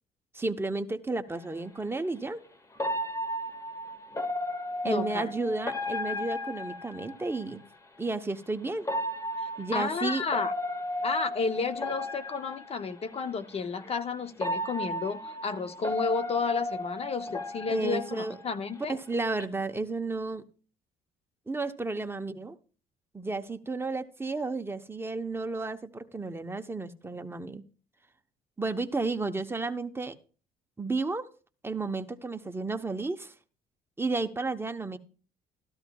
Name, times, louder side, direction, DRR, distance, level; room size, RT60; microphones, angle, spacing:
voice 1, 0.3-2.4 4.8-7.6 8.0-8.9 9.6-10.2 17.7-18.3 18.9-20.4 21.5-22.6 23.1-27.6 28.6-30.2 30.8-31.3 31.6-33.3 34.0-35.0, right 3 dB, 15° right, 0.8 m, -32 dB
sound 1, 1.3-1.4 2.8-7.5 8.8-13.0 13.8-13.9 14.4-18.8 19.1-19.4, left 1 dB, 20° left, 1.1 m, -34 dB
voice 2, 4.8-5.3 9.4-10.5 11.0-19.0, left 4 dB, 40° left, 0.7 m, -32 dB
13.5 x 13.0 x 2.3 m
cardioid pair, 95°, 16 cm